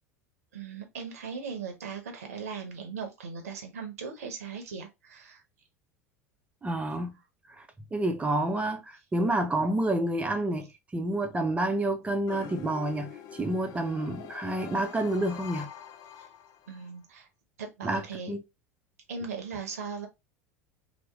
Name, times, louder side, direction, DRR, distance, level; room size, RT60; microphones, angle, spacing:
voice 1, 0.5-5.4 16.7-17.3 17.6-18.3 19.1-20.1, right 5 dB, 75° right, 0.8 m, -38 dB
voice 2, 6.6-7.2 7.5-7.6 7.9-15.7 17.8-18.4, right 1 dB, 15° right, 0.6 m, -29 dB
sound 1, 12.3-16.9, left 9 dB, 50° left, 0.4 m, -45 dB
2.9 x 2.1 x 3.4 m
hypercardioid pair, 80°, 8 cm